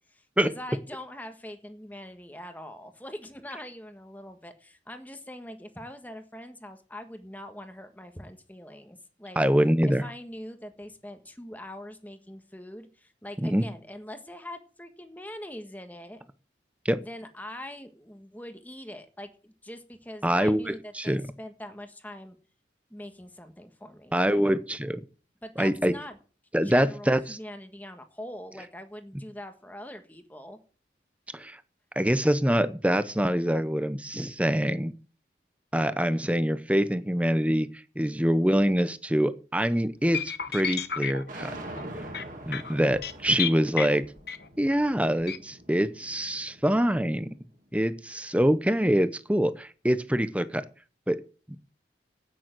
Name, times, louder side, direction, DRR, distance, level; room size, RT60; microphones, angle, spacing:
voice 1, 0.1-9.4 9.8-16.2 17.0-22.4 22.9-24.4 25.4-26.2 26.6-30.6, left 1 dB, 10° left, 7 dB, 1.4 m, -43 dB
voice 2, 9.4-10.0 13.4-13.6 16.8-17.0 20.2-21.2 24.1-25.0 25.6-25.9 26.5-27.4 31.3-31.6 32.0-34.9 35.7-37.7 38.0-41.5 42.4-44.0 44.6-47.3 47.7-50.6 51.1-51.2 51.5-51.6, equal, 5° right, 12 dB, 0.8 m, -25 dB
sound 1, 40.1-44.7 45.2-45.4, left 8 dB, 55° left, 1.1 m, -33 dB
sound 2, 41.3-47.4, right 1 dB, 45° right, 2.7 m, -44 dB
9.2 x 9.1 x 7.6 m, 0.37 s
head